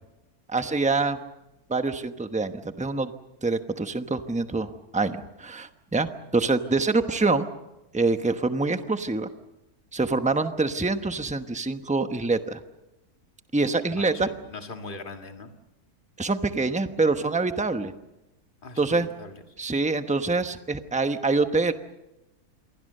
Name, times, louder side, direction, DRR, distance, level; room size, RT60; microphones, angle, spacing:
voice 1, 0.5-1.2 1.7-3.1 3.4-7.5 7.9-9.3 9.9-12.6 13.5-14.3 16.2-17.9 18.8-19.1 19.6-21.7, right 3 dB, 5° right, 8 dB, 0.9 m, -25 dB
voice 2, 13.9-15.5 18.6-19.4, left 3 dB, 35° left, 5 dB, 2.0 m, -40 dB
28.0 x 23.5 x 6.7 m, 0.96 s
omnidirectional pair, 1.6 m